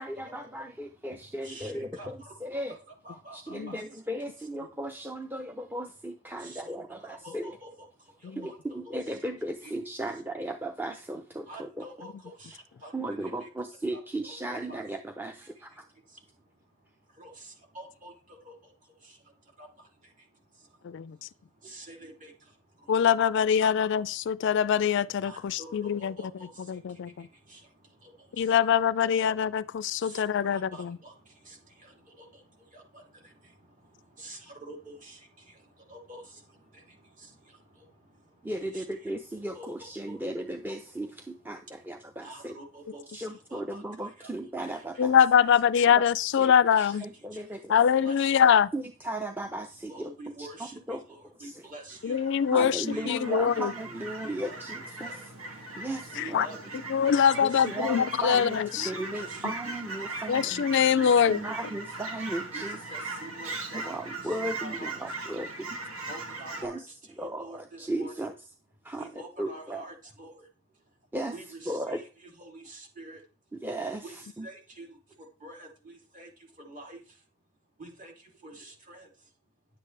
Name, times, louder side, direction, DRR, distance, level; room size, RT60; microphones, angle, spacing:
voice 1, 0.0-2.8 3.3-7.6 8.4-11.9 12.9-15.9 38.4-42.6 43.1-45.1 46.0-46.1 46.4-46.5 46.8-47.8 48.7-50.1 50.4-51.0 51.4-51.7 52.5-55.3 55.8-56.6 57.4-60.7 61.3-62.8 63.7-65.8 66.6-68.3 68.8-69.8 71.1-71.4 71.7-72.0 73.5-74.5, right 1 dB, 10° right, 0.6 m, -36 dB
voice 2, 1.4-2.8 3.0-3.8 6.4-9.0 9.6-9.7 11.5-13.5 13.9-14.0 14.5-14.8 15.9-23.3 23.6-24.5 24.9-28.7 29.0-40.2 40.8-40.9 41.5-41.6 42.0-44.3 44.6-45.0 46.9-47.7 48.0-48.4 49.9-52.5 52.9-53.7 54.2-54.6 55.0-55.2 56.1-57.7 58.8-61.8 62.5-65.0 65.3-65.4 66.1-66.8 67.4-68.1 69.0-73.2 74.0-74.2 74.4-77.3 77.8-79.3, right 1 dB, 40° right, 3.2 m, -48 dB
voice 3, 20.8-21.2 22.9-26.1 26.7-27.3 28.4-31.0 45.0-47.1 47.7-48.7 52.0-53.7 56.2-56.5 56.9-58.9 60.3-61.4, left 8 dB, 55° left, 0.3 m, -23 dB
Fowl / Chirp tweet, 51.9-66.6, right 3 dB, 90° right, 2.3 m, -39 dB
10.5 x 8.2 x 3.3 m
head